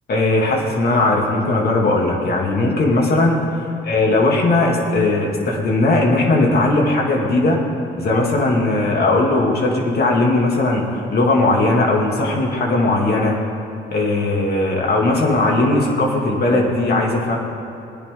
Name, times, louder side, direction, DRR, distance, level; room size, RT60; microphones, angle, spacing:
voice 1, 0.1-7.6 8.0-10.8 11.1-13.4 13.9-17.4, left 2 dB, 55° left, -1 dB, 2.7 m, -18 dB
21.5 x 10.0 x 3.9 m, 2.9 s
cardioid pair, 90°, 20 cm